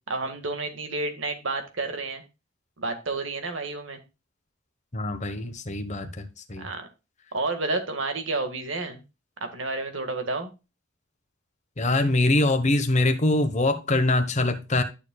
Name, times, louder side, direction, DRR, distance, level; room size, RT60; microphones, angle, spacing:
voice 1, 0.1-2.2 2.8-4.0 6.6-6.9 7.3-9.0 9.4-10.5, right 3 dB, 75° right, 1.8 m, -30 dB
voice 2, 4.9-6.7 11.8-14.8, left 2 dB, 40° left, 1.1 m, -23 dB
11.5 x 6.7 x 2.3 m
head